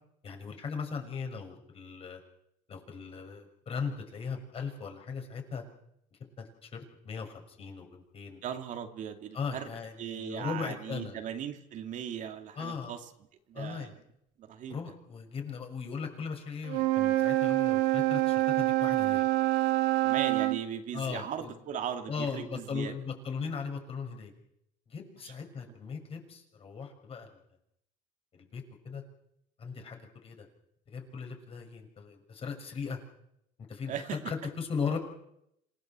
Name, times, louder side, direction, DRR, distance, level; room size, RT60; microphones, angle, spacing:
voice 1, 0.2-2.2 2.7-5.6 6.4-8.4 9.3-11.2 12.5-12.9 13.5-13.9 14.7-19.3 20.9-21.5 22.1-24.3 24.9-27.3 28.3-29.0 29.6-30.5 30.9-33.0 33.7-35.0, left 5 dB, 35° left, 4 dB, 6.5 m, -38 dB
voice 2, 8.4-9.7 10.0-13.0 13.5-13.9 14.4-14.8 20.0-23.0 25.2-25.3 33.9-34.2, right 9 dB, 50° right, 5 dB, 2.5 m, -38 dB
Wind instrument woodwind instrument, 16.6-20.6, right 17 dB, 80° right, 2.4 m, -26 dB
27.0 x 17.0 x 7.5 m, 0.76 s
supercardioid pair, 110°, 16 cm